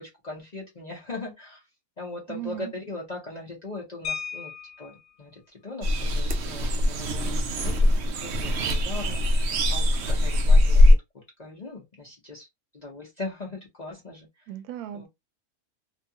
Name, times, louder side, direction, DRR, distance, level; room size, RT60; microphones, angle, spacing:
voice 1, 0.0-1.7 2.0-9.4 9.7-12.5 12.7-14.5 14.9-15.1, left 2 dB, 40° left, 0.6 m, -40 dB
voice 2, 2.3-2.7 14.5-15.1, right 10 dB, 90° right, 1.1 m, -36 dB
sound 1, 4.0-5.1 6.6-6.7 7.0-7.2 7.6-7.9, left 7 dB, 70° left, 0.9 m, -36 dB
sound 2, 5.8-10.9, left 1 dB, 65° right, 0.7 m, -21 dB
2.6 x 2.3 x 2.7 m
omnidirectional pair, 1.6 m